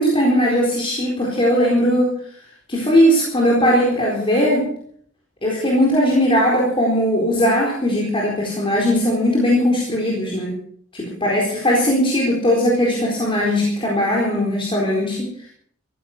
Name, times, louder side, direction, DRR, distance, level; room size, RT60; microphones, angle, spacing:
voice 1, 0.0-2.1 2.7-4.7 5.4-10.5 10.9-15.3, equal, 25° left, -3 dB, 4.2 m, -18 dB
15.5 x 14.5 x 6.1 m, 0.63 s
head